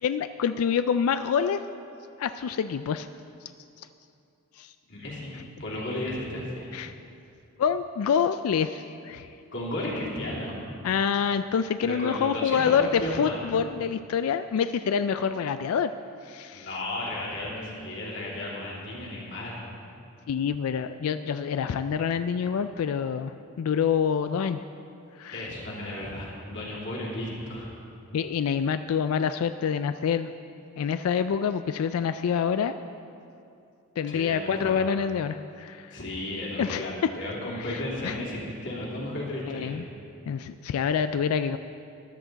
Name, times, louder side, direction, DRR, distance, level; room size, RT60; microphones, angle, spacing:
voice 1, 0.0-1.6 2.2-3.1 4.6-4.7 5.3-5.4 6.7-6.9 7.6-9.4 10.8-15.9 16.2-16.7 20.3-24.6 25.2-25.5 28.1-30.3 30.8-32.7 34.0-36.0 36.6-37.1 37.5-38.2 39.5-39.8 40.3-41.6, left 7 dB, 85° left, 10 dB, 0.3 m, -27 dB
voice 2, 4.9-5.3 5.6-6.7 9.5-10.6 11.8-13.4 16.5-19.6 25.3-27.7 34.1-34.7 35.9-39.8, left 1 dB, 55° left, -5 dB, 3.0 m, -34 dB
14.0 x 11.0 x 4.0 m, 2.6 s
head